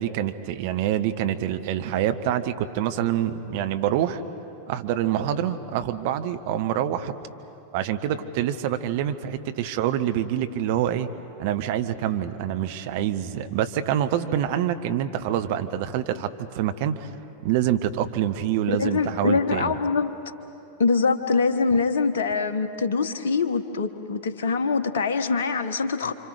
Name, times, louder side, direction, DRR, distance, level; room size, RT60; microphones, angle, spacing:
voice 1, 0.0-4.2 4.7-7.1 7.7-11.1 11.4-17.1 17.4-19.7, right 10 dB, 50° right, 9 dB, 1.1 m, -26 dB
voice 2, 18.7-20.2 20.8-26.1, left 4 dB, 60° left, 9 dB, 1.2 m, -24 dB
30.0 x 25.5 x 5.0 m, 3.0 s
figure-of-eight pair, 90°, 0 cm